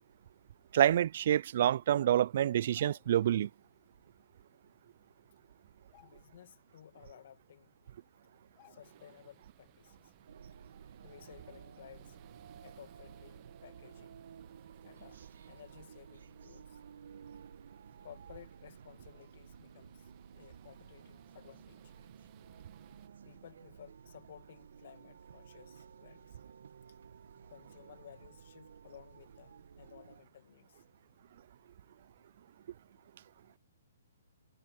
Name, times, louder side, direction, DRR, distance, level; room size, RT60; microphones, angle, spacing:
voice 1, 0.7-3.5, right 11 dB, 55° right, 0.3 m, -27 dB
sound 1, 2.6-3.3 4.8-4.9 5.2-5.4 5.8-6.6 7.0-7.1 7.9-8.0 8.6-9.2 9.6-9.7, left 24 dB, 30° left, 2.0 m, -64 dB
voice 2, 6.0-7.7 8.2-8.3 8.7-10.1 10.4-12.2 12.6-14.2 14.8-16.8 18.0-20.0 20.3-21.9 23.3-26.4 27.5-30.8, left 10 dB, 60° left, 2.2 m, -56 dB
sound 2, 8.8-23.1, right 24 dB, 35° right, 1.9 m, -64 dB
sound 3, 10.3-30.2, right 7 dB, 70° right, 1.4 m, -55 dB
hypercardioid pair, 145°, 0 cm